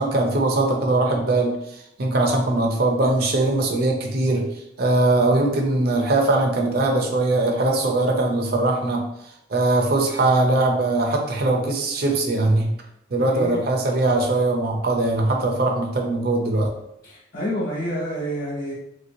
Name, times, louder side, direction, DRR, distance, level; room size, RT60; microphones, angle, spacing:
voice 1, 0.0-1.6 2.0-4.5 4.8-9.0 9.5-12.7 13.1-16.7, right 2 dB, 55° right, 2 dB, 0.5 m, -21 dB
voice 2, 17.0-18.7, equal, 45° left, -4 dB, 1.2 m, -28 dB
3.1 x 2.9 x 2.6 m, 0.79 s
head